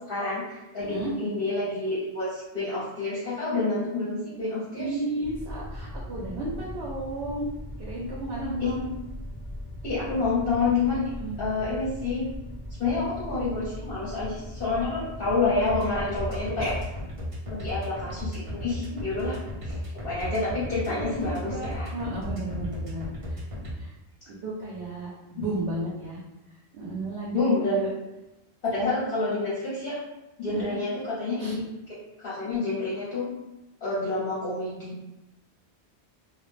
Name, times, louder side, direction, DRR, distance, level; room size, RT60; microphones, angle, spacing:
voice 1, 0.1-5.0 8.6-8.7 9.8-11.1 11.4-12.3 12.8-16.8 17.5-19.8 20.0-21.9 25.4-25.5 27.3-27.8 28.6-30.0 30.4-33.3 33.8-35.0, left 3 dB, 60° left, -9 dB, 0.8 m, -28 dB
voice 2, 0.8-1.1 4.7-7.5 7.8-8.9 11.2-11.4 16.6-16.7 20.9-23.4 23.7-23.9 24.3-26.2 26.7-27.9 28.9-29.0 30.4-30.8 31.4-31.6 32.4-32.6, right 2 dB, 70° right, -5 dB, 0.8 m, -34 dB
sound 1, 5.2-16.9, equal, 15° left, 0.5 m, -39 dB
sound 2, 15.7-23.7, left 1 dB, 40° right, 0.5 m, -35 dB
2.2 x 2.1 x 3.1 m, 0.98 s
omnidirectional pair, 1.1 m